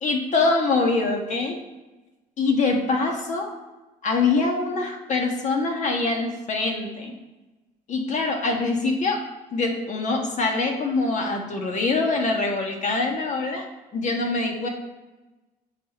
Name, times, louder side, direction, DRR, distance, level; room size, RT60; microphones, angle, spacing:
voice 1, 0.0-1.6 2.4-3.5 4.0-7.1 7.9-9.2 9.5-13.7 13.9-14.7, left 3 dB, 45° left, 2 dB, 1.5 m, -24 dB
7.5 x 4.2 x 4.3 m, 1.1 s
cardioid pair, 110°, 17 cm